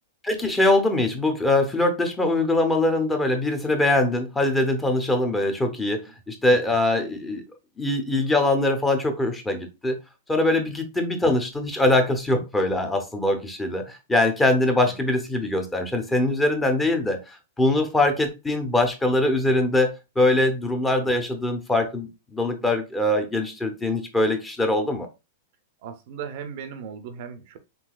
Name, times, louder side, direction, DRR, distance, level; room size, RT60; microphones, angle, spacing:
voice 1, 0.2-7.4 7.8-10.0 10.3-25.1, left 2 dB, 10° left, 0.7 m, -22 dB
voice 2, 25.8-27.6, right 7 dB, 55° right, 0.5 m, -37 dB
3.8 x 2.7 x 2.3 m
hypercardioid pair, 130°, 0 cm